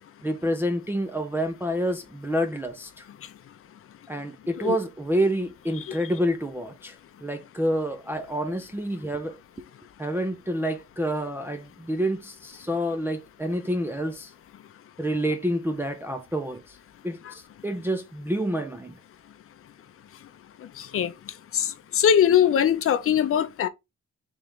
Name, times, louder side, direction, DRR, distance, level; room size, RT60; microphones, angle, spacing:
voice 1, 0.2-3.1 4.1-9.4 10.0-14.3 15.0-16.8 17.0-19.0, equal, 10° right, 0.4 m, -28 dB
voice 2, 20.8-21.1 21.5-23.7, left 9 dB, 50° left, 0.6 m, -22 dB
3.4 x 3.2 x 3.8 m
wide cardioid pair, 135°, 29 cm